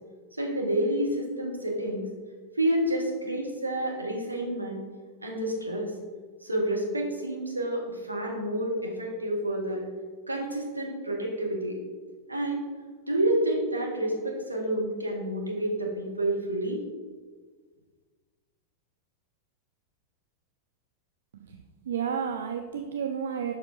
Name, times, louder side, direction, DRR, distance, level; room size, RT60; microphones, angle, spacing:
voice 1, 0.4-2.1 2.5-4.8 5.2-5.9 6.4-9.8 10.3-11.8 12.3-12.6 13.1-16.8, right 1 dB, 80° right, -1 dB, 1.2 m, -29 dB
voice 2, 21.3-23.5, right 7 dB, 65° right, 5 dB, 0.3 m, -32 dB
6.8 x 5.5 x 2.6 m, 1.5 s
figure-of-eight pair, 90°, 0 cm